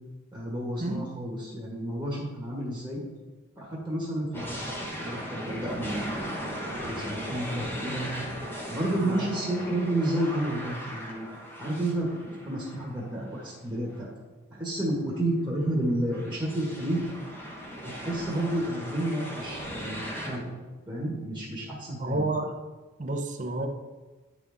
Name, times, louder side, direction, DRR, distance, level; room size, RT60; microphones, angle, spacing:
voice 1, 0.3-3.0 3.6-6.3 6.7-8.1 8.7-11.3 11.6-14.1 14.5-17.0 17.8-20.4 20.9-22.2, right 1 dB, 10° right, -5 dB, 1.5 m, -31 dB
sound 1, 4.3-13.4 13.9-14.0 15.5-20.4, equal, 10° left, 1.1 m, -38 dB
voice 2, 22.0-22.5 23.0-23.7, right 2 dB, 35° right, 5 dB, 0.6 m, -30 dB
10.5 x 4.0 x 3.5 m, 1.2 s
head